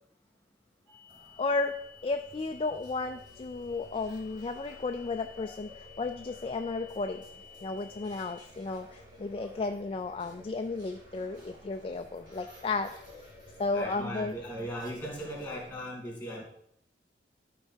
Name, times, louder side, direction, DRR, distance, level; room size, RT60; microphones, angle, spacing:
sound 1, 0.9-8.4, left 8 dB, 75° right, 2.1 m, -54 dB
sound 2, 1.1-15.7, equal, 25° right, 2.0 m, -53 dB
voice 1, 1.4-1.8 2.0-7.2 7.6-12.9 13.6-14.4, left 3 dB, 30° left, 6 dB, 0.3 m, -33 dB
voice 2, 13.7-16.4, equal, 10° left, -2 dB, 2.6 m, -39 dB
12.5 x 4.6 x 4.5 m, 0.73 s
head